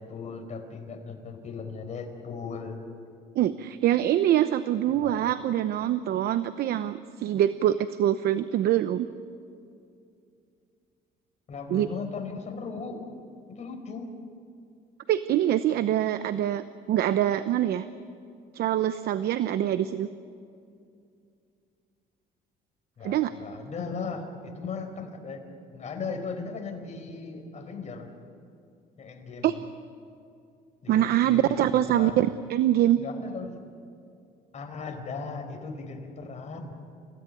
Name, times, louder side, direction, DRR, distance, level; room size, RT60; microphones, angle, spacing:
voice 1, 0.0-2.8 4.9-5.3 11.5-13.0 13.5-14.1 23.0-25.4 25.7-28.1 29.0-29.6 30.8-32.3 33.0-33.6 34.5-36.8, left 4 dB, 45° left, 4 dB, 4.8 m, -37 dB
voice 2, 3.4-9.1 11.7-11.9 15.1-17.8 18.5-20.1 23.0-23.3 29.4-29.5 30.9-33.0, right 12 dB, 70° right, 12 dB, 0.9 m, -24 dB
30.0 x 17.0 x 9.5 m, 2.4 s
cardioid pair, 110°, 17 cm